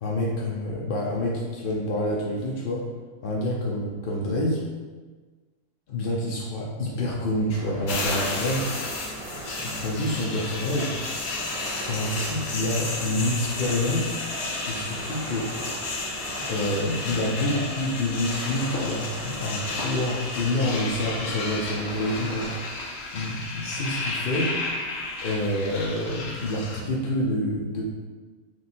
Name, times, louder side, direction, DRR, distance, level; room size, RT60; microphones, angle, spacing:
voice 1, 0.0-2.9 3.2-4.6 5.9-8.7 9.4-11.0 11.9-14.2 14.7-15.5 16.5-22.7 23.1-24.5 25.2-27.8, left 1 dB, 55° left, -4 dB, 0.7 m, -27 dB
sound 1, 7.5-22.6, right 2 dB, 40° right, 0.7 m, -39 dB
sound 2, 7.9-26.8, left 3 dB, 85° left, 1.1 m, -33 dB
3.1 x 3.1 x 4.2 m, 1.4 s
omnidirectional pair, 1.3 m